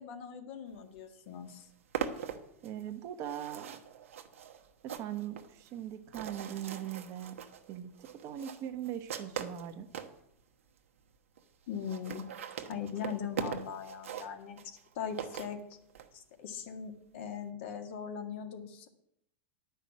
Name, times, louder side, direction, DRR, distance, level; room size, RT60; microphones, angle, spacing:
voice 1, 0.0-1.7 11.7-12.2 12.7-14.6 14.9-15.6 16.1-18.9, left 7 dB, 65° left, 5 dB, 1.7 m, -40 dB
sound 1, 1.0-1.1 1.3-10.2 10.8-10.9 11.1-11.2 11.4-11.5 11.7-16.1, right 8 dB, 85° right, 1.1 m, -41 dB
voice 2, 2.6-3.8 4.8-7.4 7.7-9.9, right 10 dB, 45° right, 8 dB, 1.1 m, -40 dB
10.0 x 5.7 x 8.6 m, 0.80 s
hypercardioid pair, 115°, 7 cm